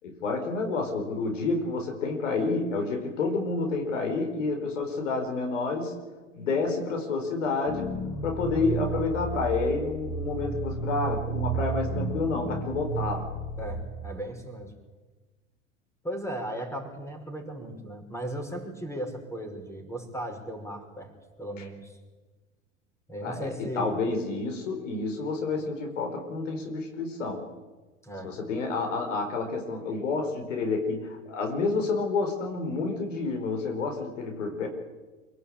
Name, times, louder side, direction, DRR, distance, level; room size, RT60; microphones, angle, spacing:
voice 1, 0.0-6.0 6.3-8.0 8.2-13.3 21.6-21.7 23.2-27.5 28.2-34.7, left 3 dB, 80° left, 4 dB, 4.8 m, -29 dB
sound 1, 7.7-13.8, right 3 dB, 45° left, 4.4 m, -32 dB
voice 2, 13.6-14.7 16.0-21.1 21.4-22.0 23.1-24.0 28.0-28.3, right 1 dB, 5° left, 5 dB, 5.7 m, -36 dB
27.0 x 18.0 x 8.9 m, 1.3 s
hypercardioid pair, 85°, 37 cm